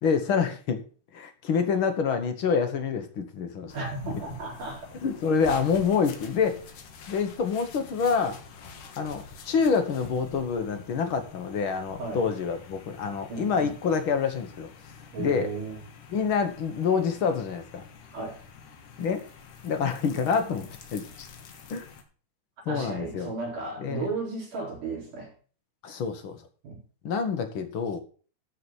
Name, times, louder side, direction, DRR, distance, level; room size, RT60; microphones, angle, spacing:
voice 1, 0.0-0.8 1.1-3.7 5.0-6.6 7.1-8.4 9.0-14.7 15.2-15.5 16.1-17.8 19.0-19.2 19.6-21.3 21.7-21.9 22.6-23.3 23.8-24.1 25.8-26.4 27.0-28.0, left 6 dB, 55° left, 7 dB, 1.6 m, -27 dB
sound 1, 3.7-22.0, left 5 dB, 75° left, 3.0 m, -47 dB
voice 2, 3.7-4.9 12.0-12.3 13.3-13.7 15.1-15.8 18.1-18.4 22.7-25.3 26.6-26.8, right 3 dB, 85° right, -2 dB, 5.7 m, -34 dB
12.5 x 4.8 x 7.0 m, 0.40 s
omnidirectional pair, 3.6 m